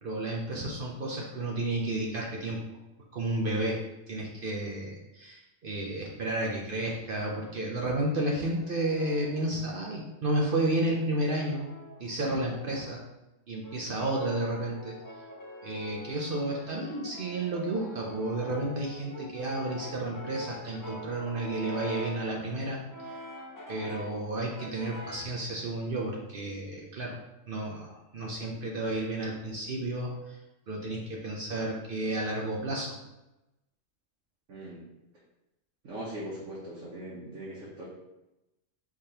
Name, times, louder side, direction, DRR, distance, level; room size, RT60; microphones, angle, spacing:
voice 1, 0.0-2.6 3.1-3.8 4.1-11.7 12.0-13.0 13.5-15.0 15.6-23.2 23.7-27.2 27.5-30.4 30.7-32.9, right 1 dB, 55° right, -2 dB, 0.7 m, -32 dB
Brass instrument, 8.5-10.2 10.9-13.0 13.6-22.3 22.9-24.2 24.6-25.4, equal, 30° left, 0.4 m, -45 dB
voice 2, 34.5-34.8 35.8-37.8, right 1 dB, 90° right, -7 dB, 1.4 m, -40 dB
4.9 x 3.6 x 2.8 m, 0.96 s
omnidirectional pair, 1.3 m